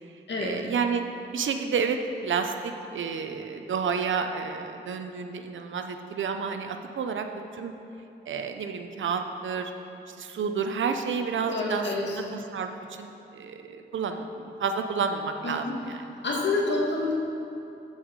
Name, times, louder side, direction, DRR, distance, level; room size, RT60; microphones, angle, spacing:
voice 1, 0.4-1.0 1.3-7.3 7.5-7.7 8.3-9.7 10.1-16.0, right 5 dB, 90° right, 6 dB, 0.7 m, -30 dB
voice 2, 11.5-12.2 15.4-15.8 16.2-17.1, left 3 dB, 70° left, -3 dB, 2.2 m, -28 dB
15.0 x 5.6 x 4.8 m, 2.9 s
cardioid pair, 70°, 19 cm